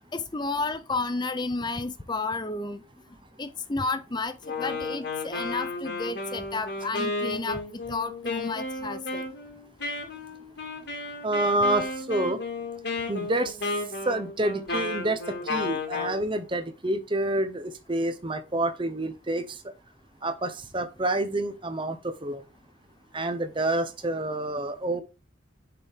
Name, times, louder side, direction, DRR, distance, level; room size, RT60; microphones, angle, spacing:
voice 1, 0.1-2.8 3.4-7.6 7.9-9.2, left 3 dB, 20° left, 0.6 m, -31 dB
Wind instrument woodwind instrument, 4.4-16.2, left 2 dB, 60° left, 2.1 m, -33 dB
voice 2, 11.2-12.4 13.1-13.6 14.1-19.6 20.2-22.4 23.1-25.0, right 1 dB, 25° right, 0.8 m, -28 dB
6.8 x 5.4 x 3.6 m
head